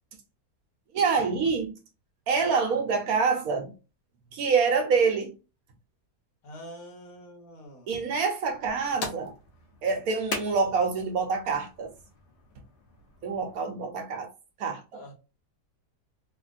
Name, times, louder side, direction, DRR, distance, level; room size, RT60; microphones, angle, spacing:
voice 1, 0.9-1.7 2.3-3.7 4.3-5.3 7.9-9.3 9.8-11.9 13.2-14.3 14.6-15.0, right 5 dB, 70° right, 1.1 m, -26 dB
voice 2, 6.4-7.9 14.9-15.1, equal, 65° left, 1.5 m, -45 dB
sound 1, 8.5-13.6, left 2 dB, 85° left, 1.5 m, -41 dB
3.4 x 2.5 x 2.4 m
omnidirectional pair, 1.7 m